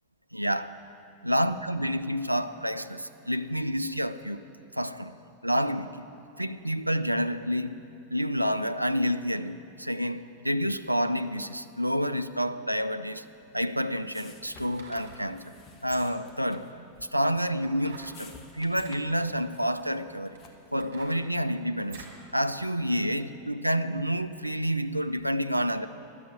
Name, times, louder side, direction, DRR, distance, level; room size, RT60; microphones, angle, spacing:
voice 1, 0.3-0.8 1.2-4.4 4.7-5.1 5.4-6.1 6.4-7.7 8.1-13.2 13.5-15.5 15.8-20.4 20.7-22.0 22.3-25.9, equal, 90° right, 12 dB, 0.3 m, -29 dB
sound 1, 13.3-20.8, left 4 dB, 30° left, 1.2 m, -54 dB
sound 2, 13.4-13.5 14.6-15.2 15.8-16.3 17.8-18.2 18.6-19.0 19.7-19.8 20.3-22.2 22.7-22.8, right 5 dB, 55° right, 2.1 m, -48 dB
12.0 x 7.5 x 7.9 m, 2.7 s
figure-of-eight pair, 90°, 0 cm